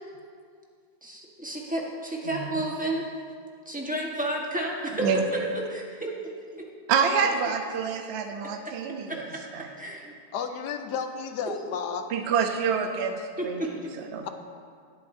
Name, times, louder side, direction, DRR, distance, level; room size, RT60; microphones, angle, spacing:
voice 1, 1.0-3.1 3.6-5.1 5.7-6.7 8.6-8.7 9.1-9.2 9.8-10.1 13.4-14.0, right 1 dB, 5° right, -2 dB, 1.1 m, -32 dB
voice 2, 6.9-9.3 9.5-9.7 12.1-13.6 14.0-14.3, right 6 dB, 50° right, 5 dB, 0.8 m, -27 dB
voice 3, 10.3-12.1 14.2-14.3, left 6 dB, 75° left, 7 dB, 1.3 m, -32 dB
19.5 x 8.3 x 2.7 m, 2.2 s
omnidirectional pair, 1.8 m